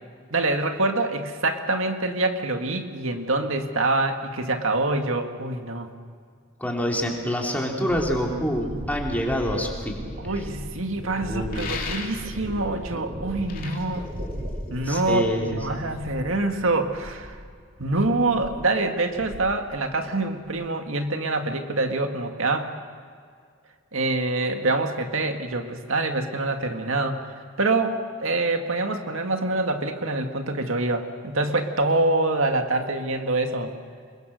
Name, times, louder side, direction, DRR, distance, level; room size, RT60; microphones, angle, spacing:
voice 1, 0.3-5.9 10.2-14.1 14.7-17.4 17.8-22.7 23.9-27.3 27.6-33.7, right 2 dB, 85° right, 5 dB, 1.9 m, -25 dB
voice 2, 6.6-10.0 11.2-11.7 14.8-15.8, equal, 10° left, -1 dB, 3.3 m, -26 dB
sound 1, 7.8-17.5 17.8-18.6 18.9-19.8 20.0-20.6, equal, 45° right, 6.8 m, -37 dB
sound 2, 11.5-12.5 13.3-15.0, left 5 dB, 45° left, 3.0 m, -36 dB
27.5 x 22.5 x 6.5 m, 2.1 s
head